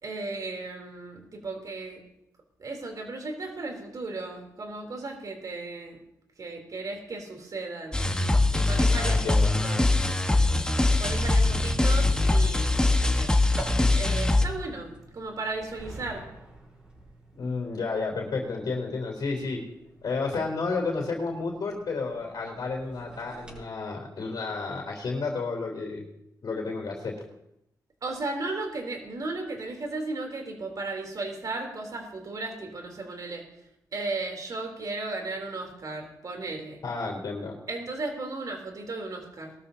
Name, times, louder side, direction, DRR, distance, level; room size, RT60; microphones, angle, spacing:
voice 1, 0.0-2.0 2.6-6.0 6.4-8.1 8.5-9.4 9.6-9.8 11.0-13.4 13.9-16.3 28.0-33.4 33.9-36.8 37.7-39.5, right 3 dB, 55° right, 2 dB, 3.4 m, -35 dB
sound 1, 7.9-14.4, left 2 dB, 10° left, 1.4 m, -22 dB
voice 2, 8.9-9.5 17.4-19.6 20.0-26.1 26.4-27.2 36.8-37.5, left 4 dB, 70° left, -2 dB, 3.6 m, -31 dB
sound 2, 12.4-23.6, equal, 15° right, 6.6 m, -45 dB
21.0 x 13.5 x 2.8 m, 0.81 s
cardioid pair, 90°, 7 cm